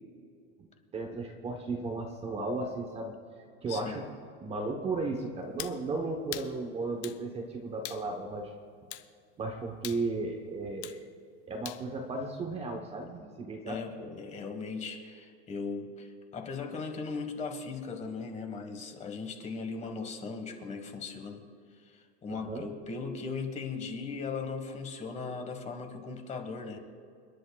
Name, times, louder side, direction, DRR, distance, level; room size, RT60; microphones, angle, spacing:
voice 1, 0.9-3.1 3.6-4.1 4.4-8.5 9.4-11.1 11.5-13.8 22.3-22.7, right 3 dB, 20° right, 2 dB, 0.9 m, -35 dB
voice 2, 3.7-4.0 13.7-21.4 21.7-26.8, left 4 dB, 20° left, 5 dB, 1.3 m, -38 dB
sound 1, 5.6-5.8 6.3-6.5 7.0-7.2 7.8-8.1 8.9-9.1 9.8-10.0 10.8-11.0 11.7-11.8, left 14 dB, 55° left, 0.8 m, -41 dB
29.5 x 10.5 x 2.3 m, 2.3 s
supercardioid pair, 160°, 34 cm